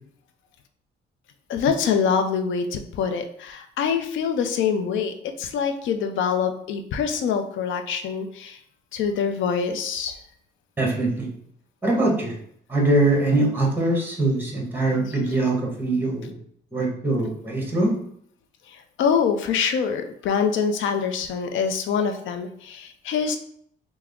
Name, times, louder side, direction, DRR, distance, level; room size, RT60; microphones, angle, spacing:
voice 1, 1.5-8.6 8.9-10.2 19.0-23.4, left 6 dB, 75° left, 7 dB, 0.5 m, -25 dB
voice 2, 10.8-11.3 11.8-12.3 12.7-16.3 16.7-17.9, right 2 dB, 10° right, -1 dB, 1.1 m, -22 dB
3.4 x 2.1 x 3.5 m, 0.65 s
cardioid pair, 90°, 20 cm